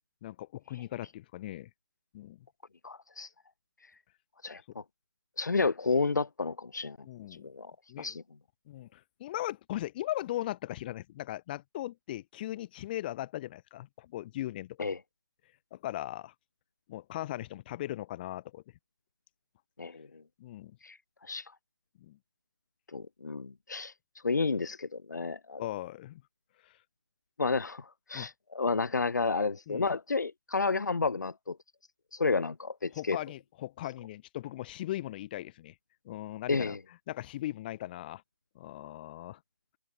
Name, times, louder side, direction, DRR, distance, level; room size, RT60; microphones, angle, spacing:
voice 1, 0.2-1.7 2.1-2.4 7.0-7.5 7.9-8.2 8.7-14.9 15.7-16.3 16.9-18.6 20.4-20.8 22.0-22.2 25.6-26.2 26.6-26.7 28.1-28.3 29.7-29.9 32.9-35.7 36.0-36.8 37.1-38.2 38.5-39.4, left 14 dB, 30° left, 3.3 m, -38 dB
voice 2, 2.8-3.3 4.4-4.8 5.4-7.0 7.3-7.7 8.0-8.2 14.8-15.0 19.8-20.1 20.8-21.0 21.2-21.5 22.9-23.9 24.2-25.6 27.4-31.6 32.1-33.2 36.5-36.8, left 4 dB, 75° left, 1.1 m, -31 dB
figure-of-eight pair, 150°, 10 cm